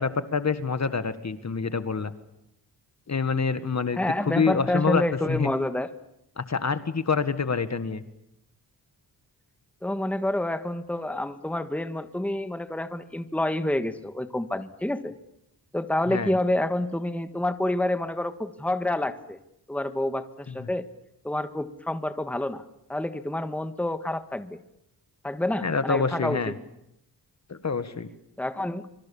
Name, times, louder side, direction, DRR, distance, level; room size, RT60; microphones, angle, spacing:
voice 1, 0.0-2.1 3.1-5.0 5.3-5.5 6.4-8.0 16.1-16.3 20.5-20.7 25.6-26.5 27.5-28.1, left 5 dB, 40° left, 11 dB, 1.6 m, -27 dB
voice 2, 4.0-5.9 9.8-15.1 15.7-19.4 19.7-20.8 21.2-22.6 22.9-24.6 25.2-26.5 28.4-28.9, left 1 dB, 5° left, 9 dB, 1.5 m, -28 dB
25.5 x 25.0 x 7.1 m, 0.82 s
cardioid pair, 80°, 41 cm